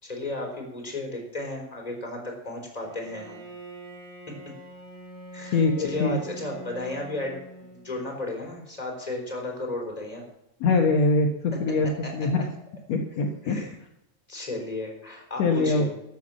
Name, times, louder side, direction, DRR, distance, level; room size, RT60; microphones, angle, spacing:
voice 1, 0.0-3.4 5.3-10.2 12.0-12.3 13.4-13.7 14.3-15.9, left 2 dB, 10° left, 0 dB, 3.8 m, -34 dB
Bowed string instrument, 2.8-8.3, right 1 dB, 55° right, 6.3 m, -43 dB
voice 2, 5.5-6.2 10.6-11.3 11.6-11.9 12.1-12.4 12.9-13.6 15.4-15.9, left 3 dB, 65° left, 1 dB, 2.3 m, -22 dB
13.0 x 8.4 x 7.4 m, 0.84 s
omnidirectional pair, 3.4 m